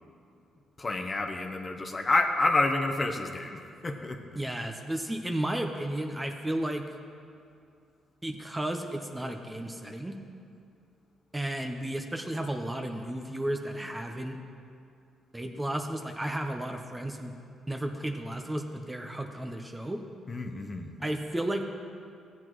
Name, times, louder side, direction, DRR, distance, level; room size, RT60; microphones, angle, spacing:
voice 1, 0.8-4.2 20.3-20.9, left 2 dB, 30° left, 4 dB, 0.9 m, -29 dB
voice 2, 4.4-6.8 8.2-10.2 11.3-14.4 15.3-17.3 17.7-20.0 21.0-21.7, right 1 dB, 15° right, 4 dB, 0.8 m, -33 dB
15.0 x 8.0 x 3.1 m, 2.4 s
cardioid pair, 75°, 0 cm